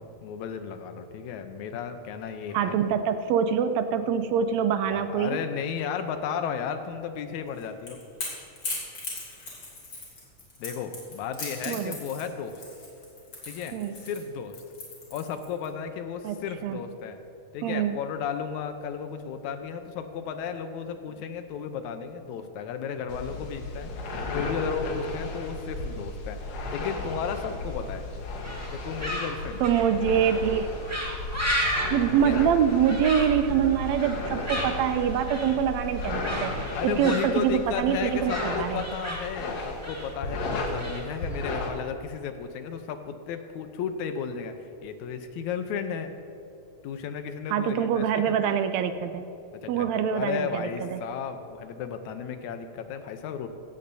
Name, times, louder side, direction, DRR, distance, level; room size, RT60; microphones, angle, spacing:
voice 1, 0.0-2.8 4.9-8.0 10.6-12.6 13.5-14.6 15.1-17.2 17.5-28.1 28.7-29.7 32.1-32.4 36.7-44.5 44.8-46.1 46.8-48.4 49.6-53.5, left 7 dB, 85° left, 8 dB, 2.1 m, -34 dB
voice 2, 2.5-5.4 11.7-12.0 13.7-14.0 16.2-16.4 16.6-16.8 17.6-18.0 29.6-30.7 31.9-38.8 47.5-49.2 49.7-51.0, right 8 dB, 80° right, 10 dB, 1.7 m, -25 dB
Crackle / Crack, 7.5-15.7, left 3 dB, 40° left, 3.6 m, -38 dB
sound 1, 23.1-41.7, left 2 dB, 70° left, 2.5 m, -34 dB
sound 2, 28.4-41.8, equal, 10° right, 0.9 m, -34 dB
16.0 x 15.5 x 2.7 m, 2.8 s
omnidirectional pair, 3.3 m